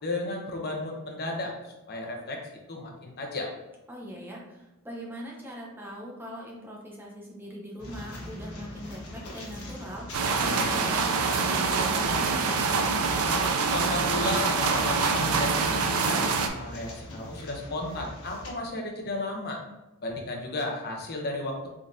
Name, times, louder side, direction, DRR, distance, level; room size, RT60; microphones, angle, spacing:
voice 1, 0.0-3.5 13.7-19.6 20.0-21.7, left 2 dB, 50° left, 1 dB, 0.8 m, -34 dB
voice 2, 3.9-12.7, equal, 10° right, -3 dB, 0.9 m, -41 dB
sound 1, 7.8-18.5, left 1 dB, 80° left, 1.0 m, -42 dB
sound 2, 10.1-16.5, right 4 dB, 85° right, 0.5 m, -25 dB
3.8 x 3.6 x 2.7 m, 1.0 s
head